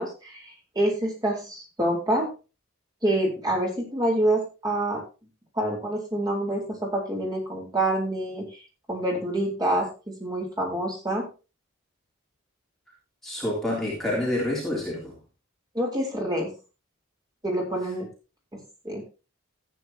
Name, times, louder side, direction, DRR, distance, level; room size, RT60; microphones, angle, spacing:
voice 1, 0.0-2.3 3.0-5.0 5.5-8.5 8.9-11.3 15.7-16.6 17.4-18.1 18.5-19.0, right 1 dB, 20° right, 4.1 m, -27 dB
voice 2, 13.2-15.2, left 1 dB, ahead, 3.3 m, -28 dB
14.5 x 9.3 x 2.9 m
head